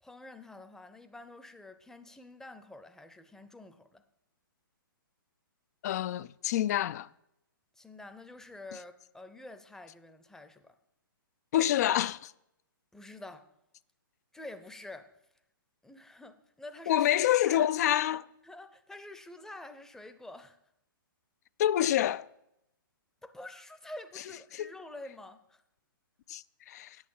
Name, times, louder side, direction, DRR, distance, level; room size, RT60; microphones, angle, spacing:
voice 1, 0.0-4.0 7.8-10.8 12.9-13.5 14.3-15.1 15.8-17.1 17.5-17.7 18.4-20.6 23.2-25.6, left 2 dB, 5° left, 0.7 m, -48 dB
voice 2, 5.8-7.1 11.5-12.3 16.9-18.2 21.6-22.3 24.5-24.7 26.3-27.0, left 12 dB, 45° left, 0.4 m, -27 dB
8.8 x 8.4 x 7.2 m
hypercardioid pair, 130°, 12 cm